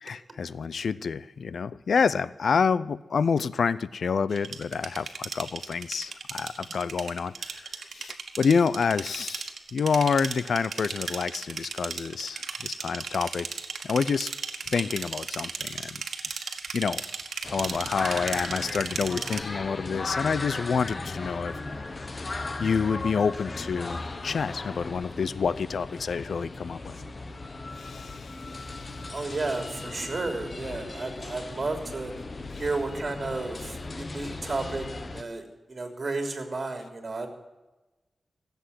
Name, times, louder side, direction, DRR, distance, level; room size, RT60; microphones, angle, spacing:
voice 1, 0.0-7.6 7.9-13.5 13.8-14.3 14.7-16.0 16.7-17.0 17.5-21.5 22.6-27.0 27.8-28.3, left 5 dB, 75° left, 17 dB, 0.6 m, -28 dB
sound 1, 4.3-19.4, right 5 dB, 80° right, 1.6 m, -36 dB
sound 2, 17.4-35.2, left 3 dB, 40° left, 1.2 m, -37 dB
voice 2, 29.1-32.1 32.6-34.9 35.1-37.3, right 3 dB, 40° right, 4 dB, 3.4 m, -32 dB
16.0 x 8.2 x 9.9 m, 1.1 s
wide cardioid pair, 80°, 0 cm